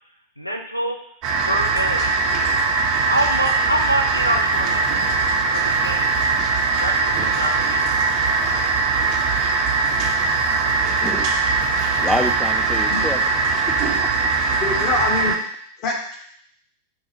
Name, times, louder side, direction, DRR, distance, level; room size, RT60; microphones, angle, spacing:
voice 1, 0.4-1.0 1.4-2.2 3.0-4.8 5.5-6.1 6.7-7.8, right 1 dB, 90° left, 4 dB, 0.5 m, -25 dB
sound 1, 1.2-15.4, right 4 dB, 45° right, 0.6 m, -21 dB
sound 2, 4.1-5.2 5.7-6.4 7.1-10.8 11.6-12.4, right 3 dB, 65° right, 1.0 m, -40 dB
voice 2, 11.0-11.3 12.0-13.9, left 1 dB, 10° left, 6 dB, 0.4 m, -27 dB
voice 3, 14.6-15.4 15.8-16.2, left 4 dB, 40° left, 1 dB, 1.0 m, -24 dB
7.0 x 2.3 x 2.9 m, 0.66 s
figure-of-eight pair, 90°, 0 cm